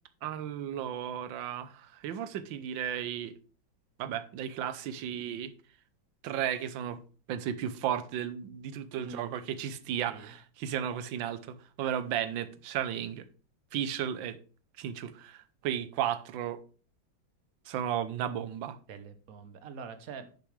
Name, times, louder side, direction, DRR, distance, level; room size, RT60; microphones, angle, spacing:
voice 1, 0.2-3.3 4.0-5.5 6.2-7.0 7.3-13.3 13.7-14.4 14.8-16.6 17.6-18.8, right 9 dB, 75° right, 1.4 m, -34 dB
voice 2, 9.0-9.3 10.1-10.3 18.9-20.3, right 5 dB, 55° right, 1.1 m, -44 dB
9.8 x 6.8 x 3.2 m
omnidirectional pair, 2.2 m